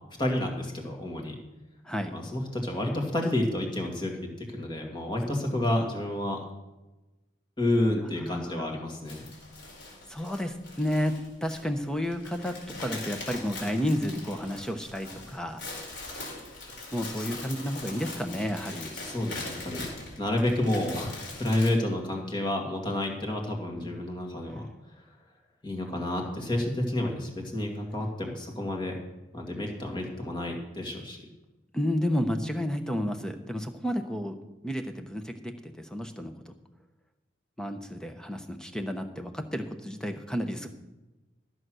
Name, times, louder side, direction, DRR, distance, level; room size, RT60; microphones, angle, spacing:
voice 1, 0.2-1.4 2.1-6.4 7.6-9.3 16.7-17.2 19.0-19.9 20.2-25.0 25.6-28.9 29.3-31.2, left 1 dB, 25° left, 1 dB, 2.2 m, -30 dB
voice 2, 8.2-8.8 10.1-15.6 16.9-18.9 23.8-23.9 31.7-34.4 34.6-36.5 37.6-40.7, equal, 5° left, 6 dB, 0.8 m, -31 dB
French fries, 9.1-21.7, left 2 dB, 65° left, 4.7 m, -41 dB
13.5 x 7.8 x 6.2 m, 1.1 s
head